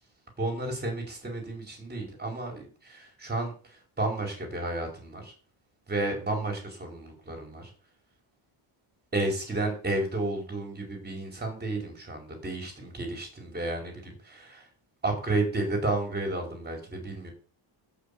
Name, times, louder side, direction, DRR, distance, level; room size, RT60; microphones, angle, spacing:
voice 1, 0.4-5.3 5.9-7.7 9.1-14.7 15.0-17.3, right 2 dB, 20° right, 2 dB, 5.0 m, -32 dB
13.0 x 6.2 x 8.6 m, 0.40 s
cardioid pair, 175°, 50 cm